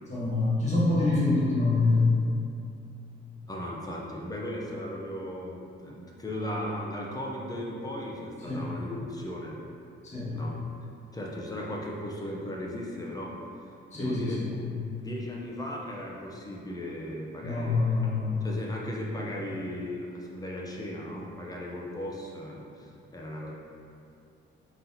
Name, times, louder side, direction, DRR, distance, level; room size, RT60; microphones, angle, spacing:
voice 1, 0.1-2.1 8.4-8.7 10.0-10.3 13.9-14.5 17.4-18.5, left 3 dB, 35° left, -8 dB, 1.3 m, -25 dB
voice 2, 3.5-9.6 10.3-10.5 11.1-13.3 13.9-14.4 15.0-18.0 18.4-23.5, left 1 dB, 20° left, -3 dB, 0.5 m, -37 dB
4.0 x 2.8 x 3.9 m, 2.4 s
cardioid pair, 130°, 20 cm